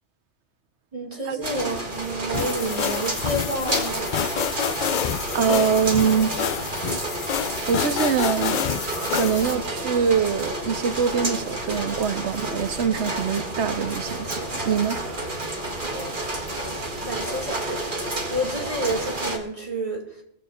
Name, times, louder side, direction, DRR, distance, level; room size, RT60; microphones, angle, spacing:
voice 1, 0.9-4.1 15.8-16.3 17.0-17.9 18.3-20.2, right 1 dB, 30° right, 2.5 m, -30 dB
sound 1, 1.4-19.4, right 1 dB, 50° right, 1.8 m, -30 dB
sound 2, 2.3-9.5, left 8 dB, 55° left, 0.6 m, -28 dB
voice 2, 5.3-6.4 7.7-8.6 9.1-15.0, right 7 dB, 90° right, 1.1 m, -24 dB
20.0 x 7.5 x 4.3 m
omnidirectional pair, 1.1 m